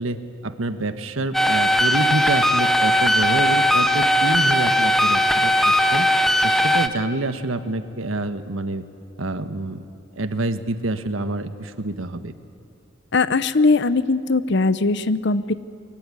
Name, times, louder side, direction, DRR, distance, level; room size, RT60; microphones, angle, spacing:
voice 1, 0.0-8.8 9.2-9.9 10.2-12.3, right 2 dB, 80° right, 10 dB, 1.4 m, -27 dB
sound 1, 1.3-6.9, equal, ahead, 0.8 m, -18 dB
voice 2, 13.1-15.5, left 3 dB, 60° left, 15 dB, 0.8 m, -20 dB
23.0 x 23.0 x 9.8 m, 2.4 s
head